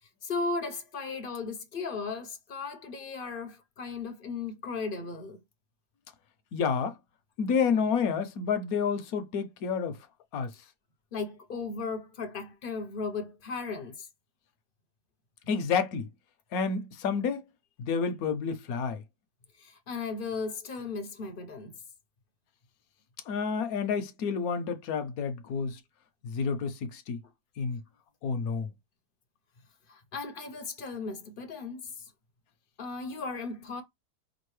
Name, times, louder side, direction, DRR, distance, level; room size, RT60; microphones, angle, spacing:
voice 1, 0.2-5.4 11.1-14.1 19.6-21.7 29.9-32.1 32.8-33.8, left 4 dB, 45° left, 0.8 m, -36 dB
voice 2, 6.5-6.9 7.4-10.0 10.3-10.5 15.5-16.1 16.5-17.4 17.8-19.0 23.3-25.8 26.2-27.2 27.6-27.8 28.2-28.7, left 6 dB, 70° left, 1.1 m, -29 dB
5.2 x 2.5 x 3.1 m
omnidirectional pair, 1.7 m